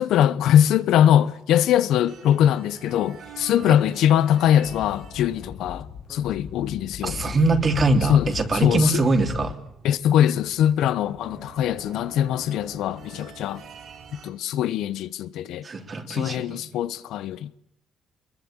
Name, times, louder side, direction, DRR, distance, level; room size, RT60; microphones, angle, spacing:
voice 1, 0.0-7.2 8.1-8.3 8.6-9.0 9.8-13.6 14.2-15.6 16.1-17.5, left 10 dB, 85° left, 1.0 m, -21 dB
sound 1, 2.1-14.3, right 7 dB, 65° right, 7.2 m, -47 dB
Speech / Wind, 4.6-9.5, left 8 dB, 65° left, 1.3 m, -37 dB
voice 2, 7.0-9.6 15.6-16.6, right 2 dB, 40° right, 3.5 m, -23 dB
24.5 x 22.5 x 8.9 m
cardioid pair, 90°, 0 cm